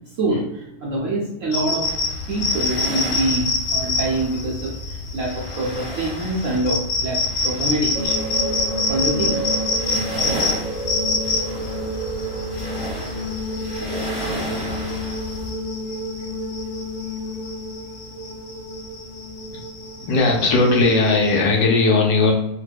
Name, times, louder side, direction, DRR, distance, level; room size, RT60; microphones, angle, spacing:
voice 1, 0.2-1.9 2.3-8.3 8.9-9.4, right 2 dB, 65° right, -4 dB, 0.8 m, -25 dB
sound 1, 1.5-21.4, left 3 dB, 65° left, 0.8 m, -27 dB
sound 2, 1.8-15.5, equal, 25° right, 0.8 m, -33 dB
sound 3, 7.9-21.7, equal, 85° right, 1.2 m, -30 dB
voice 2, 20.0-22.3, left 3 dB, 80° left, 0 dB, 1.2 m, -17 dB
3.0 x 2.1 x 3.3 m, 0.87 s
omnidirectional pair, 1.9 m